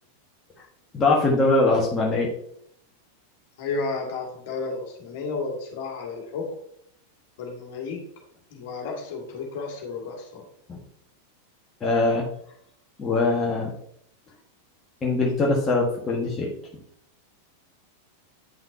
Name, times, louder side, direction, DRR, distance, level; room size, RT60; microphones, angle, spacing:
voice 1, 0.9-2.3 10.7-10.8 11.8-12.3 13.0-13.7 15.0-16.5, left 2 dB, 20° left, -3 dB, 1.5 m, -22 dB
voice 2, 3.6-6.5 7.4-8.0 8.5-10.4, left 4 dB, 50° left, 0 dB, 2.0 m, -32 dB
9.1 x 5.8 x 2.8 m, 0.70 s
figure-of-eight pair, 90°, 0 cm